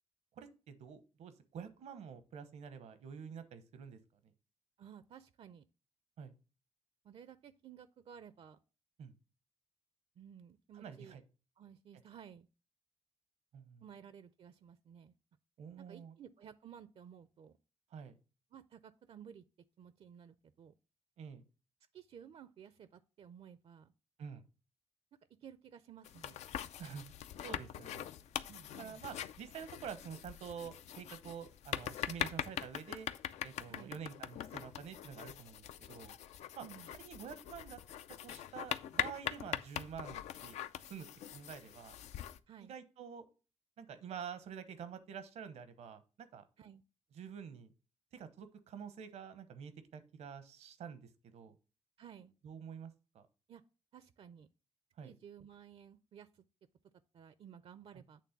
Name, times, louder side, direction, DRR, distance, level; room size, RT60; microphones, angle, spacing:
voice 1, 0.4-4.0 6.2-6.3 9.0-9.1 10.7-11.2 13.5-13.8 15.6-16.1 17.9-18.2 21.2-21.4 24.2-24.4 26.8-27.1 27.4-28.1 28.8-33.1 33.4-36.1 36.5-37.8 38.2-40.6 40.9-42.0 42.6-43.2 43.8-46.4 47.1-47.7 48.1-51.5 52.4-53.2 55.0-55.1, right 7 dB, 85° right, 0.9 m, -48 dB
voice 2, 4.8-5.6 7.0-8.6 10.2-11.2 11.6-12.5 13.8-15.1 15.8-17.6 18.5-19.4 19.8-20.7 21.9-23.9 25.4-26.4 28.5-29.0 33.7-34.0 36.6-36.9 42.5-42.7 46.6-46.8 52.0-52.3 53.5-53.6 53.9-54.5 55.0-56.4 57.1-58.2, right 8 dB, 60° right, 0.4 m, -55 dB
sound 1, 26.0-42.4, left 11 dB, 90° left, 0.4 m, -43 dB
8.5 x 3.3 x 5.8 m
cardioid pair, 85°, 11 cm